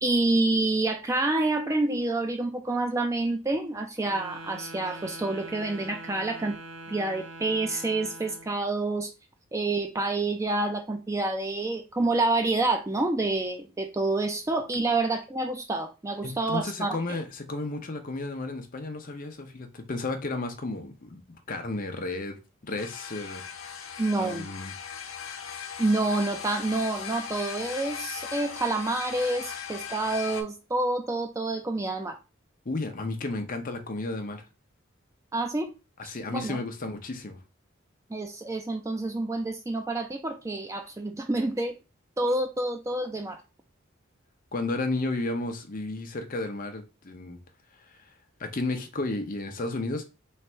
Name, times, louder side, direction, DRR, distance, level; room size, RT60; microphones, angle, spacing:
voice 1, 0.0-6.6 6.9-9.1 9.5-17.2 24.0-24.5 25.8-32.2 35.3-35.7 36.0-36.6 38.1-41.8 42.2-43.4, right 2 dB, 15° right, 0.3 m, -28 dB
Wind instrument woodwind instrument, 4.0-8.6, right 2 dB, 65° right, 0.7 m, -43 dB
voice 2, 16.2-21.2 21.5-23.4 24.2-24.7 32.7-34.4 36.1-37.4 44.5-47.4 48.4-50.0, left 2 dB, 40° left, 0.7 m, -33 dB
sound 1, 22.8-30.4, left 7 dB, 80° left, 0.7 m, -38 dB
3.2 x 2.5 x 4.3 m
head